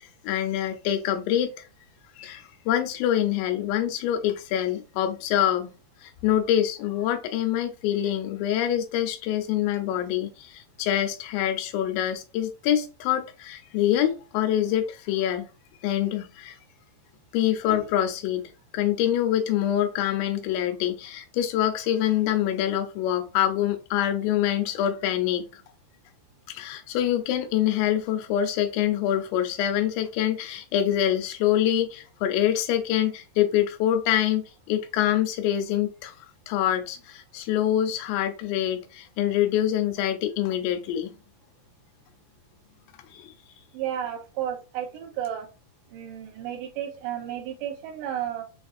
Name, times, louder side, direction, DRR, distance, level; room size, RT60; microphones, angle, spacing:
voice 1, 0.0-1.5 2.2-5.7 6.0-15.5 15.8-16.6 17.3-25.6 26.5-41.2 43.1-43.3, left 11 dB, 85° left, 3.0 m, -25 dB
voice 2, 43.7-45.5 45.9-48.4, right 10 dB, 85° right, 2.8 m, -32 dB
7.1 x 2.6 x 2.4 m
omnidirectional pair, 5.0 m